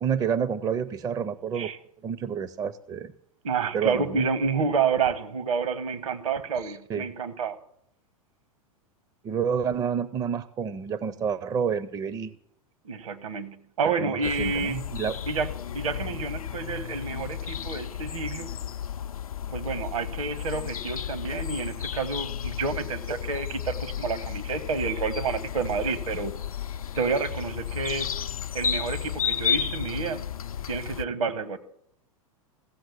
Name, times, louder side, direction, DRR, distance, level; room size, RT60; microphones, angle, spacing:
voice 1, 0.0-1.7 2.0-3.1 3.7-4.2 6.6-7.1 9.2-12.3 14.0-15.2, right 7 dB, 20° right, 16 dB, 0.5 m, -29 dB
voice 2, 3.4-7.6 12.8-14.8 15.3-18.5 19.5-26.3 26.9-28.1 28.5-30.3 30.7-31.6, right 5 dB, 65° right, 13 dB, 1.2 m, -29 dB
sound 1, 14.2-31.0, left 9 dB, 75° left, 0.5 m, -33 dB
15.5 x 7.7 x 8.5 m, 0.72 s
figure-of-eight pair, 95°, 18 cm